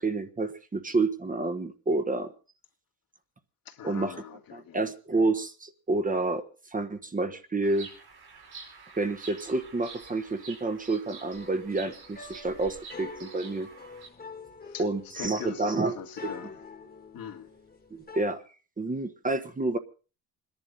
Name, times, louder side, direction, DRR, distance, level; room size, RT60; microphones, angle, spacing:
voice 1, 0.0-2.3 3.8-4.1 4.5-6.4 6.7-7.9 9.0-13.7 14.8-15.9 17.9-18.4 18.8-19.8, right 2 dB, 20° right, 1.2 m, -29 dB
voice 2, 3.7-4.8 14.7-14.9 15.2-16.6 17.1-17.5, left 8 dB, 70° left, 2.0 m, -42 dB
Bird vocalization bird call bird song, 7.6-14.1, right 5 dB, 80° right, 4.7 m, -48 dB
sound 1, 11.3-18.3, left 4 dB, 25° left, 1.7 m, -46 dB
27.5 x 11.0 x 3.9 m
cardioid pair, 125°, 37 cm